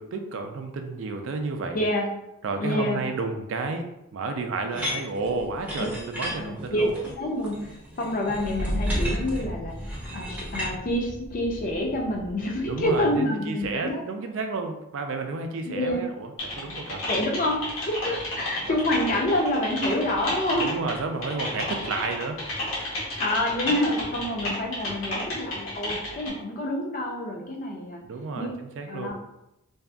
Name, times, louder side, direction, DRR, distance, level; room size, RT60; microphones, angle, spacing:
voice 1, 0.0-1.8 2.4-6.9 12.6-17.1 18.7-18.8 20.6-22.4 28.0-29.1, right 3 dB, 65° right, 5 dB, 0.3 m, -31 dB
voice 2, 1.7-2.1 2.6-3.0 6.4-9.7 10.1-14.0 15.7-16.0 17.1-20.7 23.2-28.0 28.4-28.5 28.9-29.1, left 1 dB, 40° left, 0 dB, 0.5 m, -27 dB
sound 1, 4.7-10.7, equal, 5° right, 0.5 m, -35 dB
sound 2, 5.3-13.1, equal, 40° right, 0.9 m, -35 dB
Typing, 16.4-26.3, left 1 dB, 75° left, 0.9 m, -32 dB
2.7 x 2.4 x 2.2 m, 0.87 s
head